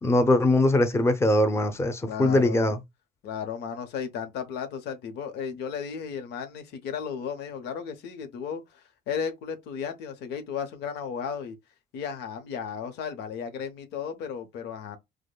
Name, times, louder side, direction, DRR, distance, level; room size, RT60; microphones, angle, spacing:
voice 1, 0.0-2.8, left 1 dB, 15° left, 0.7 m, -21 dB
voice 2, 2.1-2.6 3.2-11.6 11.9-15.0, left 7 dB, 85° left, 1.0 m, -34 dB
4.9 x 2.2 x 2.2 m
cardioid pair, 110°, 17 cm